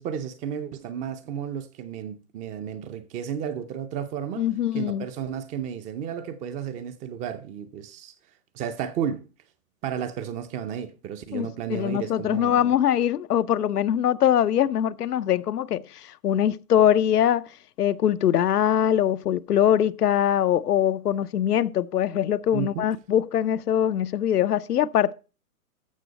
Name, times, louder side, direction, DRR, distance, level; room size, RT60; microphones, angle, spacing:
voice 1, 0.0-4.5 4.7-8.1 8.5-9.3 9.8-12.7 22.5-22.9, right 8 dB, 15° right, 0.6 m, -33 dB
voice 2, 4.4-5.0 11.3-17.5 17.8-25.1, left 10 dB, 85° left, 0.8 m, -22 dB
14.0 x 6.1 x 4.1 m
hypercardioid pair, 135°, 46 cm